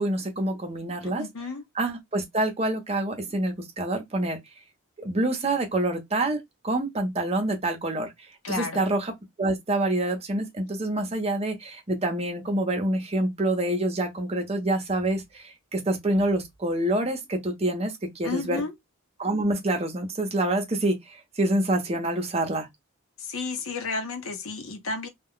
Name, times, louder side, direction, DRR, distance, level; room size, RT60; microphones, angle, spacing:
voice 1, 0.0-1.3 1.8-4.4 5.0-8.1 8.5-9.1 9.4-18.6 19.2-22.7, right 1 dB, 30° right, 0.7 m, -27 dB
voice 2, 0.9-1.6 8.4-8.9 18.2-18.7 23.2-25.1, left 3 dB, 70° left, 0.8 m, -32 dB
2.3 x 2.2 x 3.6 m
head